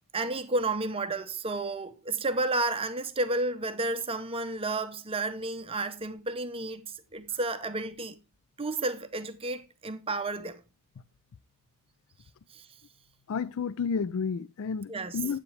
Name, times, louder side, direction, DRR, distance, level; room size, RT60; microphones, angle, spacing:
voice 1, 0.1-8.2 8.6-10.6 12.5-12.6 14.9-15.2, right 2 dB, 25° right, 0.7 m, -31 dB
voice 2, 13.3-15.4, left 6 dB, 65° left, 0.4 m, -31 dB
9.7 x 8.4 x 3.2 m
head